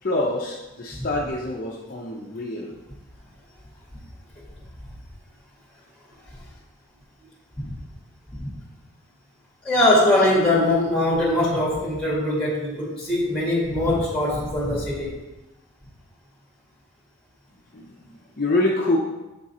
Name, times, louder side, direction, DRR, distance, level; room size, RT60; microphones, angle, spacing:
voice 1, 0.0-2.8 17.7-19.0, left 2 dB, 40° left, -2 dB, 0.6 m, -26 dB
voice 2, 9.6-15.1, left 1 dB, 5° left, -5 dB, 1.5 m, -21 dB
6.7 x 3.7 x 4.2 m, 1.0 s
head